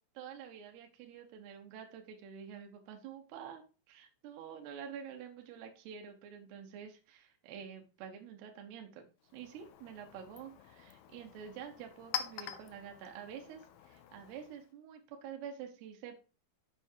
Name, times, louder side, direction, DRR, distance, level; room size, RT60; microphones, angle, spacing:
voice 1, 0.1-9.1 9.3-16.1, right 8 dB, 70° right, 3 dB, 3.0 m, -48 dB
Chink clink, 9.2-14.7, left 10 dB, 80° left, 2.2 m, -46 dB
7.0 x 7.0 x 4.6 m, 0.34 s
omnidirectional pair, 5.3 m